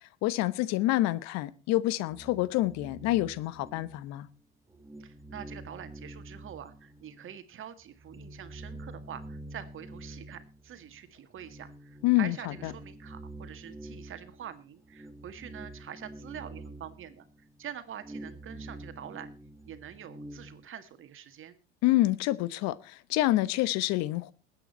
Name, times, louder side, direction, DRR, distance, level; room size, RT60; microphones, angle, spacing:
voice 1, 0.2-4.3 12.0-12.7 21.8-24.3, left 16 dB, 55° left, 1.0 m, -27 dB
sound 1, 2.1-4.4 4.7-7.4 7.8-20.7, right 1 dB, 10° right, 1.3 m, -47 dB
voice 2, 5.0-19.3 19.7-21.6, right 9 dB, 40° right, 2.0 m, -45 dB
20.5 x 9.0 x 4.3 m
hypercardioid pair, 85°, 31 cm